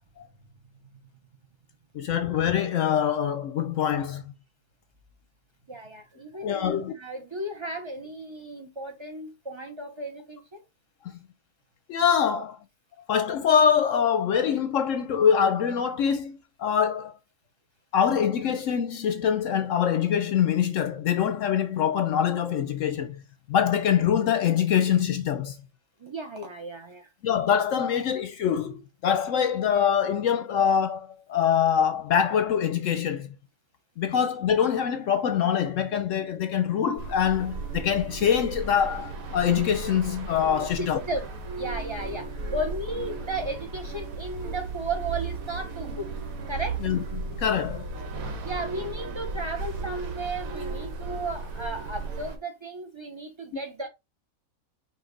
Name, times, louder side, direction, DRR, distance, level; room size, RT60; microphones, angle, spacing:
voice 1, 1.9-4.2 6.4-6.9 11.0-11.2 11.9-12.6 13.1-17.1 17.9-23.2 23.5-25.6 27.2-33.3 34.0-41.0 46.8-47.0 47.4-47.9, left 8 dB, 70° left, 0.9 m, -24 dB
voice 2, 5.7-10.6 12.3-12.4 26.0-27.1 40.8-46.1 46.5-46.8 48.4-53.9, right 2 dB, 25° right, 0.6 m, -35 dB
sound 1, 37.0-52.4, right 3 dB, 75° right, 1.4 m, -35 dB
5.4 x 2.5 x 3.8 m
omnidirectional pair, 1.5 m